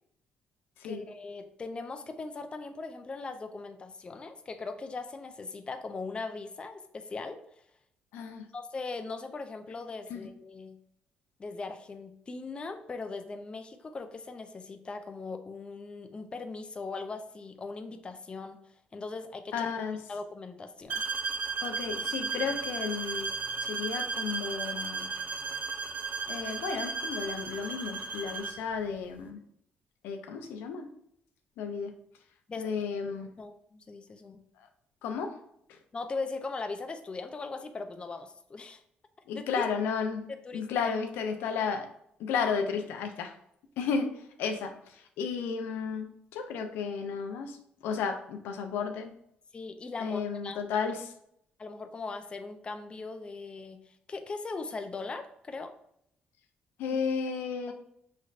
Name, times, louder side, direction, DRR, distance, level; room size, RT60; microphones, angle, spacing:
voice 1, 0.8-7.4 8.5-10.8 11.4-18.6 18.9-19.7 20.1-21.0 32.5-32.7 33.4-34.4 35.9-38.8 39.3-39.6 40.5-40.9 49.5-50.6 51.6-55.7 56.9-57.0 57.7-57.8, left 3 dB, 30° left, 7 dB, 0.5 m, -39 dB
voice 2, 8.1-8.5 10.1-10.2 19.5-20.0 21.6-23.3 23.6-25.1 26.3-29.4 30.0-30.9 31.6-31.9 32.6-33.3 35.0-35.3 35.7-35.8 39.3-40.2 40.5-41.9 42.2-43.3 43.8-47.6 47.8-49.1 50.0-51.1 56.8-57.7, left 6 dB, 90° left, 5 dB, 0.5 m, -33 dB
sound 1, 20.9-28.6, right 4 dB, 50° right, 0.5 m, -35 dB
5.1 x 3.2 x 2.5 m, 0.72 s
cardioid pair, 90°, 3 cm